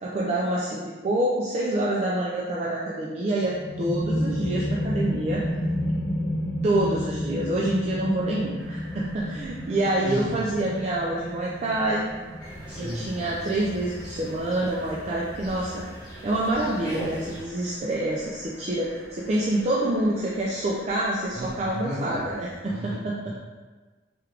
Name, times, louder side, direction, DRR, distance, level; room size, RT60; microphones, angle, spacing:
voice 1, 0.0-5.4 6.6-12.0 12.8-15.8 16.2-23.3, right 1 dB, 35° right, -5 dB, 0.3 m, -27 dB
sound 1, 3.3-14.7, equal, 90° left, 0.5 m, -31 dB
sound 2, 8.6-22.6, right 1 dB, 70° right, 0.9 m, -47 dB
voice 2, 10.0-10.5 12.7-13.1 21.3-22.2 22.7-23.0 23.2-23.3, equal, 5° right, -11 dB, 1.1 m, -33 dB
sound 3, 12.4-17.4, equal, 25° left, 0.9 m, -41 dB
3.4 x 2.3 x 3.3 m, 1.3 s
head